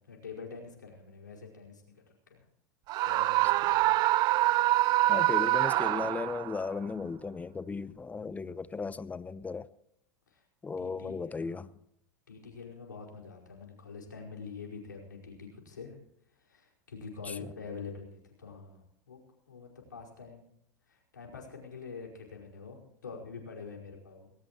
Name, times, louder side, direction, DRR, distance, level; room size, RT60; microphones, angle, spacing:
voice 1, 0.0-2.4 3.0-3.9 10.3-10.4 10.8-11.7 12.3-16.0 16.3-19.2 19.5-20.5 20.8-24.3, left 5 dB, 90° left, 5.1 m, -46 dB
Screaming, 2.9-6.6, right 17 dB, 45° right, 0.5 m, -25 dB
voice 2, 5.1-9.7 10.6-11.7 17.3-17.5, left 4 dB, 15° left, 0.9 m, -36 dB
20.0 x 18.5 x 3.0 m
hypercardioid pair, 90°, 10 cm